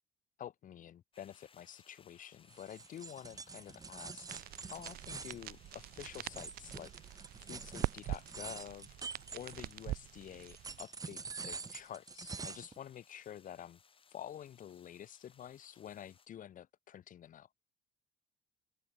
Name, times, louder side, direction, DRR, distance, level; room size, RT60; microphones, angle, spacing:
voice 1, 0.4-4.3 4.7-13.8 14.1-17.5, left 10 dB, 50° left, 1.5 m, -49 dB
sound 1, 1.1-16.3, left 6 dB, 30° left, 3.3 m, -66 dB
sound 2, 2.5-9.9 10.4-12.8, right 4 dB, 20° right, 0.8 m, -46 dB
sound 3, 4.3-10.8, right 15 dB, 60° right, 0.4 m, -44 dB
open air
cardioid pair, 110°, 17 cm